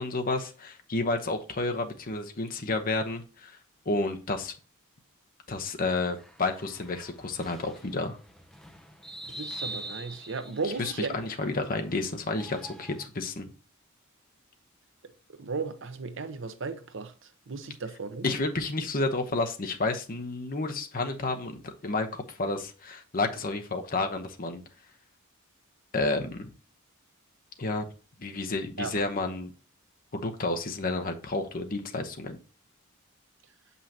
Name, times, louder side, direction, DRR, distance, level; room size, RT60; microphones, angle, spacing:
voice 1, 0.0-3.5 3.9-4.5 5.5-8.2 10.8-13.5 18.2-24.6 25.9-26.5 27.6-27.9 28.2-29.5 30.1-32.4, left 2 dB, 40° left, 1.0 m, -30 dB
sound 1, 6.2-13.1, right 1 dB, ahead, 0.7 m, -44 dB
voice 2, 9.2-11.2 15.4-17.1 17.5-18.3 28.8-28.9, right 4 dB, 60° right, 0.8 m, -35 dB
7.6 x 5.6 x 2.8 m
head